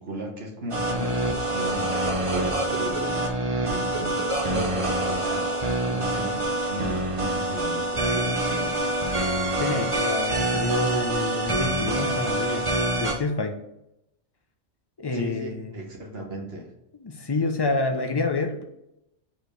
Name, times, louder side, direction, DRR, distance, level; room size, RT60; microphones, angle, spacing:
voice 1, 0.0-4.2 4.5-8.9 15.1-16.7, right 1 dB, 55° right, 0 dB, 1.5 m, -37 dB
sound 1, 0.7-13.1, right 1 dB, 30° right, 0.9 m, -26 dB
voice 2, 9.6-12.7 13.0-13.6 15.0-15.8 17.0-18.6, left 2 dB, 25° left, 5 dB, 0.6 m, -28 dB
5.1 x 4.5 x 5.2 m, 0.84 s
omnidirectional pair, 1.3 m